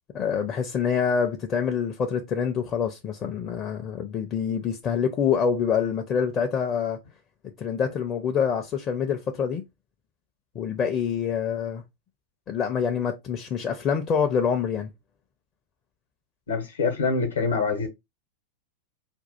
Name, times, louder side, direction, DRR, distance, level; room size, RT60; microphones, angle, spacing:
voice 1, 0.1-7.0 7.6-9.6 10.5-11.8 12.5-14.9, left 7 dB, 30° left, 0.5 m, -26 dB
voice 2, 16.5-17.9, left 4 dB, 65° left, 0.9 m, -25 dB
4.4 x 2.4 x 4.0 m
figure-of-eight pair, 90°, 0 cm